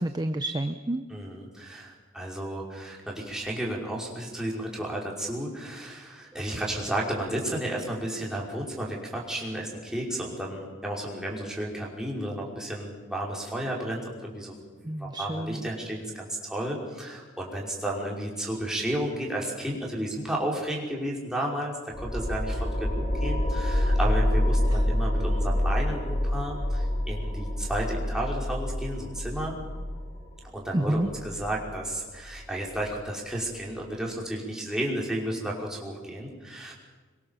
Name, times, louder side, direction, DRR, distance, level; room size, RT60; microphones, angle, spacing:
voice 1, 0.0-1.0 14.8-15.7 24.7-24.8 30.7-31.1, right 1 dB, 20° right, 8 dB, 0.8 m, -29 dB
voice 2, 1.1-14.6 15.0-29.6 30.5-36.7, right 1 dB, 5° right, -3 dB, 5.3 m, -32 dB
sound 1, 21.9-33.0, left 1 dB, 40° left, 6.3 m, -27 dB
26.0 x 23.5 x 7.4 m, 1.4 s
head